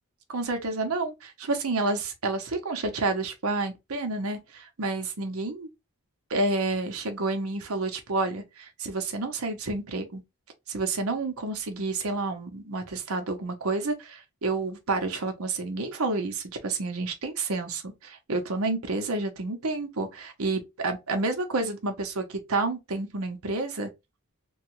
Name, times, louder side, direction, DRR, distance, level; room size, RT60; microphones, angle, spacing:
voice 1, 0.3-5.7 6.3-10.2 10.7-23.9, right 3 dB, 85° right, 0.8 m, -29 dB
3.1 x 2.3 x 3.0 m
head